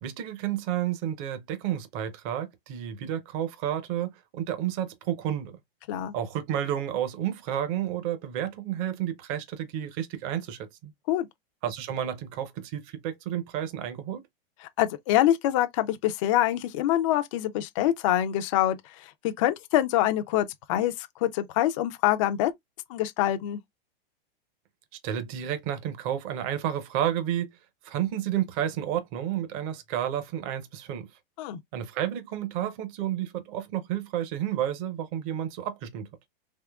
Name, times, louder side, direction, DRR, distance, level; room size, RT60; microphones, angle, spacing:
voice 1, 0.0-5.6 6.1-10.9 11.6-14.2 25.0-27.5 27.8-31.1 31.7-36.1, right 10 dB, 35° right, 0.7 m, -31 dB
voice 2, 14.8-22.5 22.9-23.6 31.4-31.6, left 13 dB, 35° left, 0.4 m, -25 dB
3.6 x 2.9 x 2.3 m
supercardioid pair, 150°, 30 cm